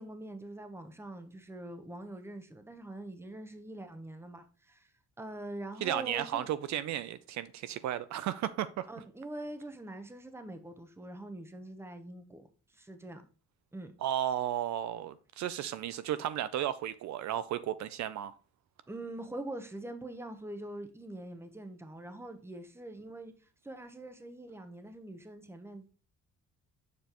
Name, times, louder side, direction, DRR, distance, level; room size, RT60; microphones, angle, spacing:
voice 1, 0.0-4.9 5.2-6.5 8.9-12.5 12.7-13.2 13.7-13.9 18.9-23.3 23.6-25.9, right 1 dB, 10° right, 0.9 m, -44 dB
voice 2, 5.8-8.9 14.0-18.4, right 11 dB, 70° right, 0.4 m, -34 dB
6.8 x 5.1 x 3.0 m
cardioid pair, 90°, 30 cm